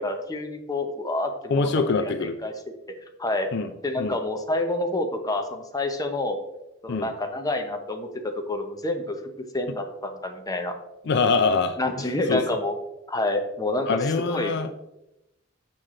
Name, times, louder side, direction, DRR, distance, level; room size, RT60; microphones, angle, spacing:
voice 1, 0.0-2.5 3.2-3.5 3.8-6.4 6.8-9.2 9.5-10.7 11.8-12.8 13.1-14.0 14.3-14.5, left 2 dB, 20° left, 5 dB, 0.7 m, -28 dB
voice 2, 1.5-2.4 3.5-3.7 4.0-4.2 6.9-7.1 11.1-11.8 12.3-12.4 13.8-14.7, left 4 dB, 60° left, 10 dB, 0.4 m, -24 dB
6.6 x 5.9 x 3.7 m, 0.91 s
head